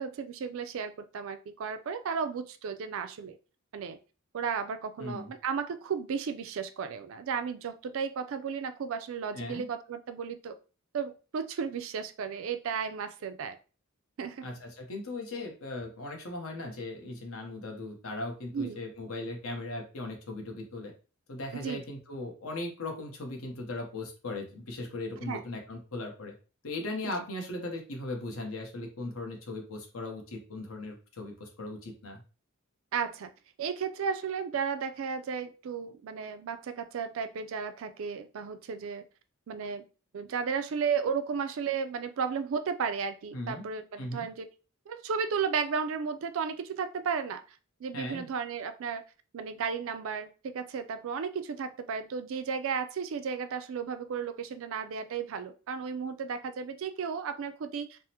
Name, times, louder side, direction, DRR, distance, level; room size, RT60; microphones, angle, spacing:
voice 1, 0.0-3.4 3.7-4.0 4.3-10.6 10.9-13.6 14.2-14.5 18.5-18.8 21.5-21.8 25.3-25.4 27.0-27.1 32.9-33.3 33.6-39.0 39.5-39.9 40.1-44.5 44.9-49.0 49.3-58.0, right 6 dB, 65° right, 9 dB, 0.4 m, -34 dB
voice 2, 5.0-5.3 9.3-9.7 14.4-20.9 21.3-26.3 26.6-32.2 43.3-43.6 44.0-44.3 47.9-48.3, left 2 dB, 75° left, 2 dB, 0.9 m, -38 dB
3.4 x 2.0 x 2.8 m, 0.34 s
head